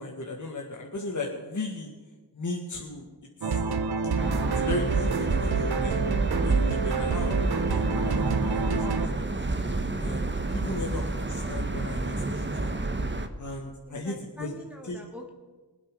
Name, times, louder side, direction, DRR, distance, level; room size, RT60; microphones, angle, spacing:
voice 1, 0.0-1.9 2.3-3.1 3.4-3.6 4.6-6.0 6.4-9.5 10.0-10.2 10.5-12.8 13.4-14.5 14.8-15.0, left 2 dB, 45° left, -1 dB, 1.8 m, -36 dB
sound 1, 3.4-9.1, right 5 dB, 60° right, 0.9 m, -27 dB
sound 2, 4.2-13.3, right 2 dB, 25° right, 1.3 m, -29 dB
voice 2, 13.9-15.3, equal, 5° right, 1 dB, 1.6 m, -44 dB
20.5 x 8.6 x 5.3 m, 1.4 s
cardioid pair, 45°, 42 cm